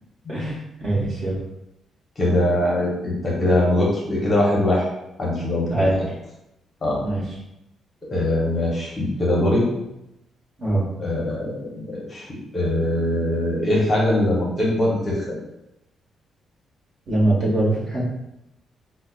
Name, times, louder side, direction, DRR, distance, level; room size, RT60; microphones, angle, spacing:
voice 1, 0.8-1.4 5.7-6.1 7.0-7.2 10.6-10.8 17.1-18.1, right 1 dB, 40° right, -5 dB, 1.1 m, -22 dB
voice 2, 2.2-4.9 5.2-6.1 6.8-7.0 8.1-9.6 11.0-15.4, left 1 dB, 25° left, -4 dB, 0.7 m, -22 dB
5.1 x 2.0 x 2.3 m, 0.87 s
cardioid pair, 175°, 0 cm